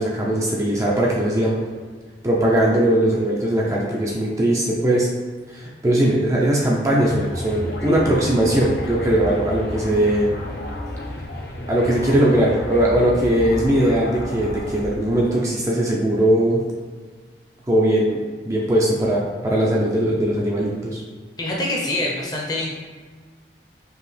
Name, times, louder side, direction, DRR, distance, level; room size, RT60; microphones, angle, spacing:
voice 1, 0.0-1.6 2.2-5.1 5.5-10.3 11.7-16.6 17.7-18.2 18.5-21.0, right 1 dB, 20° right, -4 dB, 0.4 m, -19 dB
sound 1, 7.0-15.2, left 1 dB, 70° left, 0.6 m, -31 dB
voice 2, 21.4-22.7, left 1 dB, 20° left, -2 dB, 0.7 m, -25 dB
4.7 x 2.9 x 3.2 m, 1.5 s
head